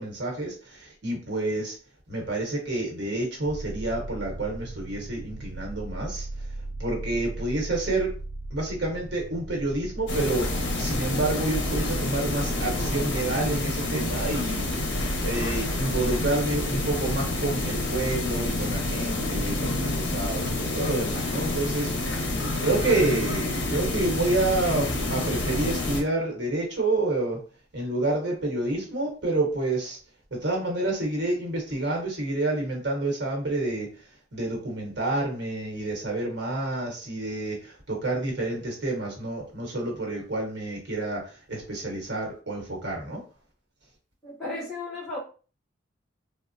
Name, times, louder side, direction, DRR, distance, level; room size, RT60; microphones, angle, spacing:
voice 1, 0.0-1.8 2.1-6.3 6.8-8.1 8.5-14.7 15.2-22.1 22.6-27.4 27.7-30.0 30.3-33.9 34.3-43.2, right 2 dB, 60° right, -1 dB, 1.0 m, -28 dB
sound 1, 3.4-19.7, right 2 dB, 85° right, 0.4 m, -37 dB
sound 2, 10.1-26.0, left 2 dB, 60° left, 0.8 m, -28 dB
voice 2, 44.2-45.2, left 2 dB, ahead, -8 dB, 1.3 m, -34 dB
3.4 x 2.0 x 2.5 m, 0.37 s
head